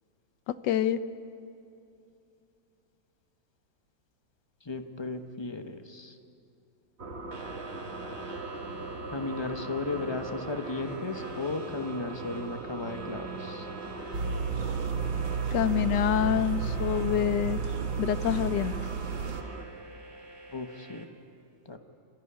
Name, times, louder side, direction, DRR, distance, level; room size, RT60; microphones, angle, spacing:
voice 1, 0.5-1.0 15.5-17.6 18.0-18.7, left 11 dB, 70° left, 14 dB, 1.3 m, -26 dB
voice 2, 4.6-6.2 9.1-13.7 20.5-21.1 21.6-21.8, left 3 dB, 25° left, 7 dB, 0.7 m, -35 dB
sound 1, 7.0-19.7, right 3 dB, 35° right, 1.4 m, -41 dB
sound 2, 7.3-21.0, right 1 dB, 15° right, 1.7 m, -47 dB
sound 3, 14.1-19.4, right 6 dB, 85° right, 2.4 m, -32 dB
26.0 x 13.5 x 9.9 m, 2.7 s
omnidirectional pair, 2.1 m